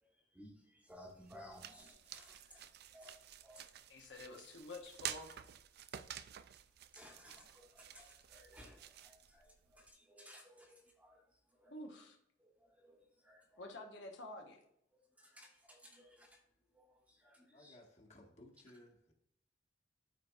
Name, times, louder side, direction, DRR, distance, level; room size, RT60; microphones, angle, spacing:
voice 1, 0.0-2.6 2.9-3.8 6.9-11.2 11.5-11.7 12.4-13.6 14.9-16.4 16.7-17.8, equal, 10° right, 1 dB, 1.3 m, -59 dB
sound 1, 0.9-9.9, right 10 dB, 55° right, 0.4 m, -51 dB
voice 2, 2.5-3.0 3.9-5.4 11.7-12.2 13.6-14.6, left 2 dB, 70° left, 2 dB, 1.2 m, -50 dB
voice 3, 17.5-19.1, left 1 dB, 40° left, 0 dB, 1.7 m, -60 dB
12.5 x 4.4 x 2.5 m, 0.75 s
head